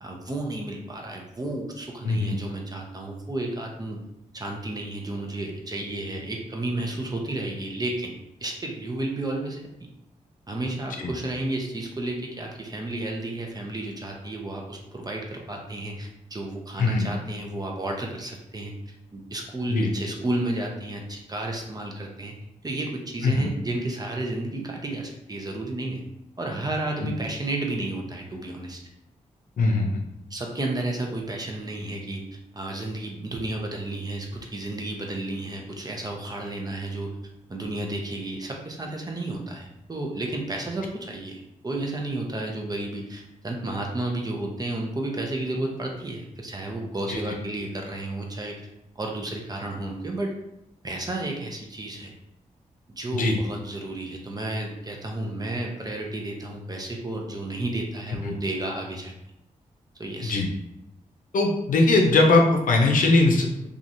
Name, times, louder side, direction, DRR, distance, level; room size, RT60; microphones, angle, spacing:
voice 1, 0.0-4.0 4.3-9.6 10.5-18.7 19.1-22.3 22.6-26.0 26.4-28.8 30.3-32.2 32.5-37.1 37.5-48.6 49.0-50.3 50.8-52.1 53.0-59.1 60.0-60.4, right 2 dB, 30° right, 1 dB, 0.7 m, -32 dB
voice 2, 2.0-2.4 11.0-11.1 16.8-17.1 19.7-19.9 23.2-23.5 29.6-30.0 47.1-47.2 53.1-53.4 58.2-58.3 60.2-60.5 61.3-63.7, left 2 dB, 75° left, 1 dB, 0.6 m, -20 dB
2.9 x 2.4 x 2.6 m, 0.84 s
cardioid pair, 60°, 14 cm